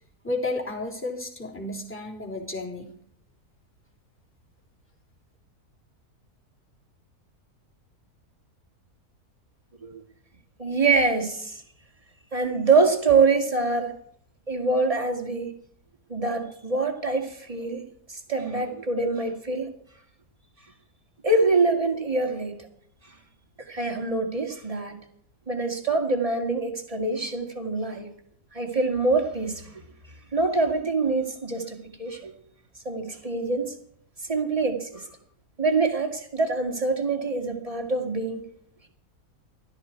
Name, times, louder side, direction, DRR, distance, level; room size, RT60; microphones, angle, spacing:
voice 1, 0.2-2.9, left 2 dB, 5° left, -2 dB, 3.5 m, -32 dB
voice 2, 10.6-11.6 12.3-13.9 14.5-15.5 16.1-17.8 18.1-19.7 21.2-22.7 23.7-25.0 25.5-28.1 28.5-29.7 30.3-32.3 32.8-33.7 34.2-35.1 35.6-38.4, right 3 dB, 20° right, 4 dB, 2.3 m, -25 dB
17.0 x 13.0 x 4.6 m, 0.66 s
omnidirectional pair, 1.7 m